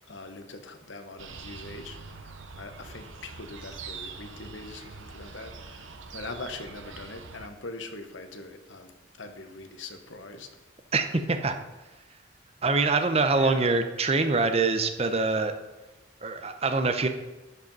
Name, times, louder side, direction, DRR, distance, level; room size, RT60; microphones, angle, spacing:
voice 1, 0.1-2.0 2.6-5.9 6.1-10.5 13.3-13.7, left 3 dB, 75° left, 7 dB, 1.0 m, -42 dB
sound 1, 1.2-7.5, right 4 dB, 80° right, 0.9 m, -44 dB
voice 2, 10.9-11.5 12.6-15.5 16.2-17.1, right 3 dB, 30° right, 7 dB, 0.6 m, -24 dB
11.0 x 5.1 x 5.3 m, 1.1 s
head